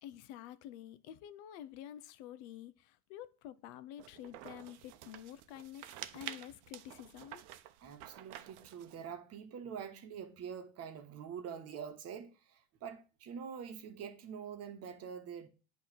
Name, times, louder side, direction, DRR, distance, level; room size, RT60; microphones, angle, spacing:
voice 1, 0.0-7.4, left 11 dB, 65° left, 0.7 m, -49 dB
sound 1, 4.0-9.1, right 13 dB, 60° right, 0.7 m, -50 dB
voice 2, 7.8-15.5, right 7 dB, 40° right, 1.2 m, -45 dB
8.4 x 3.2 x 5.9 m
supercardioid pair, 120°, 38 cm